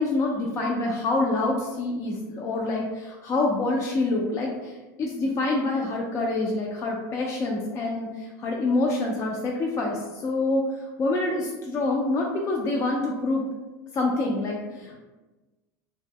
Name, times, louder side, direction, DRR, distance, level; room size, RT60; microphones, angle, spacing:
voice 1, 0.0-13.4 13.9-15.0, left 2 dB, 30° left, -1 dB, 0.3 m, -26 dB
2.0 x 2.0 x 3.4 m, 1.2 s
supercardioid pair, 115°, 10 cm